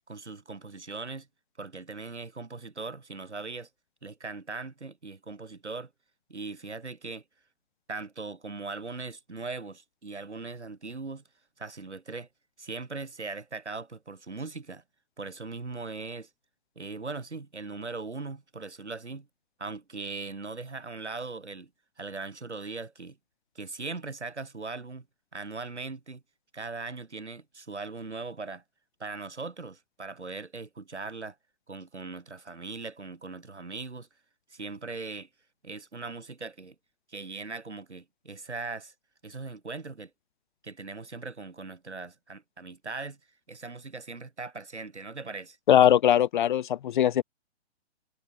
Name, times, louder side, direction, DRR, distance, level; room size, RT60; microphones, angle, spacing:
voice 1, 0.1-1.3 1.6-3.7 4.0-5.9 6.3-7.2 7.9-11.2 11.6-12.3 12.6-14.8 15.2-16.3 16.7-19.3 19.6-21.7 22.0-23.2 23.5-25.1 25.3-26.2 26.5-28.6 29.0-31.3 31.7-34.1 34.5-35.3 35.6-36.7 37.1-38.9 39.2-40.1 40.6-43.2 43.5-45.6, right 3 dB, 85° right, 3.4 m, -39 dB
voice 2, 45.7-47.2, left 10 dB, 45° left, 1.4 m, -21 dB
figure-of-eight pair, 130°, 33 cm